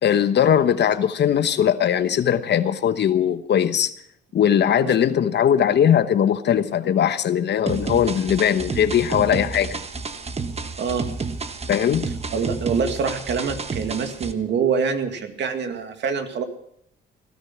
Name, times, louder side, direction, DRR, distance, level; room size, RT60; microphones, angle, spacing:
voice 1, 0.0-3.9 4.3-9.8 11.7-12.1, left 9 dB, 60° left, 1.0 m, -20 dB
sound 1, 7.7-14.3, right 4 dB, 30° right, 1.3 m, -30 dB
voice 2, 12.3-16.4, right 6 dB, 65° right, 2.2 m, -25 dB
18.0 x 12.5 x 6.0 m
cardioid pair, 90°, 20 cm